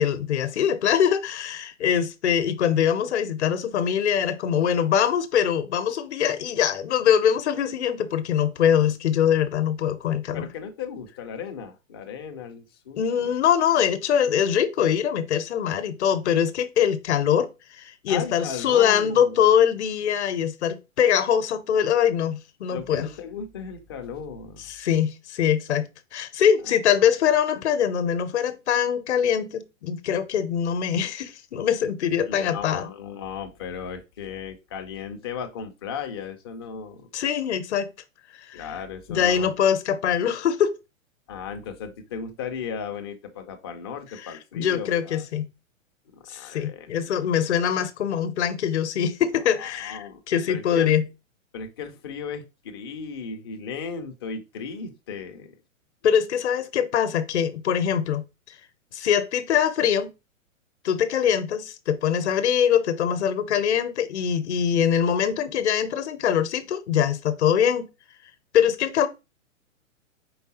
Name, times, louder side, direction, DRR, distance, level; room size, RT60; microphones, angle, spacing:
voice 1, 0.0-10.5 13.0-23.1 24.6-32.9 37.1-37.9 38.5-38.6 39.1-40.7 44.2-45.5 46.3-51.1 56.0-58.2 58.9-60.1 60.8-67.9 68.5-69.1, left 9 dB, 55° left, 0.7 m, -23 dB
voice 2, 10.3-13.3 18.1-19.4 22.7-24.6 32.3-37.1 38.5-39.5 41.3-45.2 46.1-47.3 49.6-50.2 50.5-50.9 51.5-55.5, left 6 dB, 20° left, 0.3 m, -36 dB
4.6 x 3.3 x 2.8 m
figure-of-eight pair, 115°, 40 cm